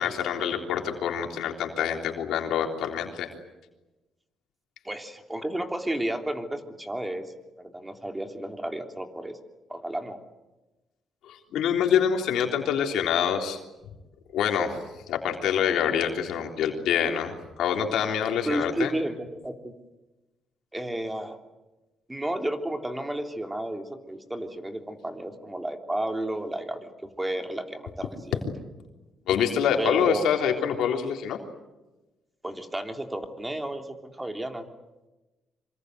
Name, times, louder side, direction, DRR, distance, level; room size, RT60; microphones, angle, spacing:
voice 1, 0.0-3.3 11.2-13.6 14.3-14.8 15.1-18.9 29.3-31.4, left 8 dB, 80° left, 3 dB, 3.5 m, -26 dB
voice 2, 4.8-7.3 7.6-9.4 9.7-10.2 18.2-19.7 20.7-21.4 22.1-28.4 29.8-30.3 32.4-34.7, right 1 dB, 10° right, 5 dB, 3.3 m, -32 dB
26.5 x 25.0 x 8.0 m, 1.1 s
cardioid pair, 90°, 0 cm